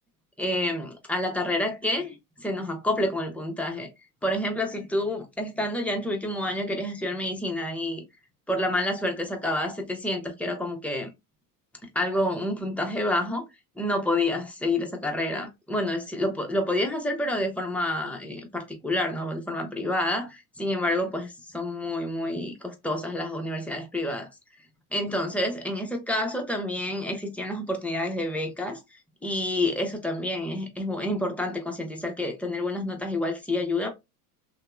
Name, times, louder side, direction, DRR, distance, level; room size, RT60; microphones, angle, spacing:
voice 1, 0.4-3.9 4.2-8.0 8.5-11.1 11.9-13.5 13.8-24.3 24.9-28.8 29.2-33.9, left 1 dB, 5° left, 0.7 m, -28 dB
2.8 x 2.2 x 2.3 m
hypercardioid pair, 85°, 46 cm